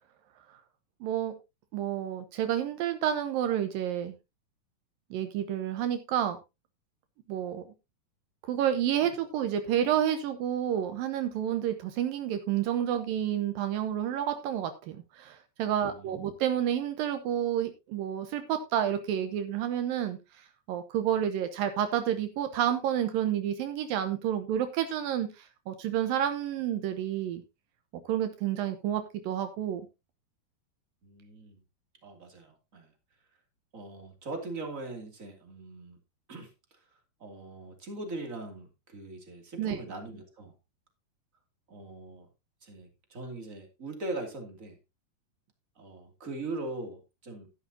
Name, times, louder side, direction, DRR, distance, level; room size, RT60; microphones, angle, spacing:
voice 1, 1.0-1.3 1.7-4.2 5.1-6.4 7.3-7.6 8.5-20.2 20.7-27.4 28.1-29.9 39.6-39.8, right 10 dB, 75° right, 8 dB, 2.7 m, -30 dB
voice 2, 15.8-16.3 31.0-31.6 32.0-32.9 33.7-36.0 36.3-36.5 37.2-40.5 41.7-42.3 42.6-44.8 45.8-47.5, right 2 dB, 25° right, 4 dB, 2.7 m, -41 dB
13.0 x 11.0 x 2.8 m, 0.25 s
omnidirectional pair, 4.2 m